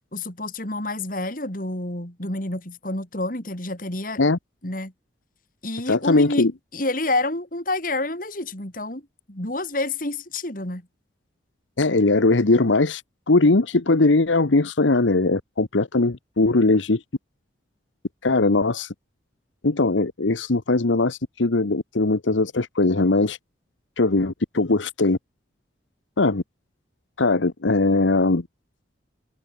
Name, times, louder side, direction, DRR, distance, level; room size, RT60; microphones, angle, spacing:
voice 1, 0.1-4.2 4.6-4.9 5.6-9.0 9.3-10.8, left 2 dB, 45° left, 4.0 m, -28 dB
voice 2, 5.9-6.5 11.8-13.0 13.3-17.0 18.2-18.9 19.6-23.4 24.0-25.2 26.2-26.4 27.2-28.5, left 2 dB, 90° left, 1.1 m, -20 dB
open air
head